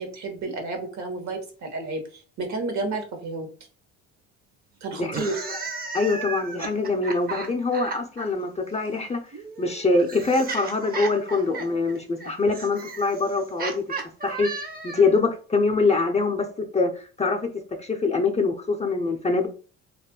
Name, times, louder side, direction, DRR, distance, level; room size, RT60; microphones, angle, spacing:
voice 1, 0.0-3.5 4.8-5.4, right 3 dB, 60° right, 5 dB, 1.0 m, -31 dB
voice 2, 5.0-5.3 5.9-9.3 9.6-13.8 14.2-14.5 14.8-16.5 16.7-17.5 17.8-19.5, left 3 dB, 20° left, 2 dB, 0.5 m, -24 dB
sound 1, 5.0-8.3 9.3-15.2, right 4 dB, 30° right, 0.7 m, -35 dB
2.4 x 2.2 x 3.6 m, 0.40 s
supercardioid pair, 65°, 33 cm